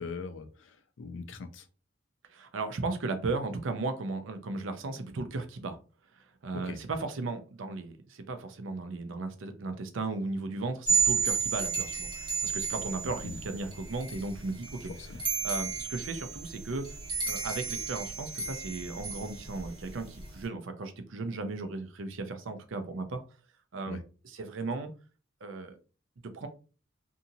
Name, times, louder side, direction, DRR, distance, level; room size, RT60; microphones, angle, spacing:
voice 1, 0.0-1.7 6.5-6.8 13.2-13.4 15.0-15.2 23.9-24.0, left 4 dB, 70° left, 9 dB, 0.5 m, -41 dB
voice 2, 2.3-5.8 6.1-14.9 15.4-16.8 17.3-23.2 23.7-24.9 25.4-25.8 26.2-26.5, right 3 dB, 75° right, 8 dB, 0.5 m, -36 dB
sound 1, 10.8-20.4, right 5 dB, 25° right, 1.3 m, -33 dB
2.7 x 2.6 x 2.6 m, 0.36 s
head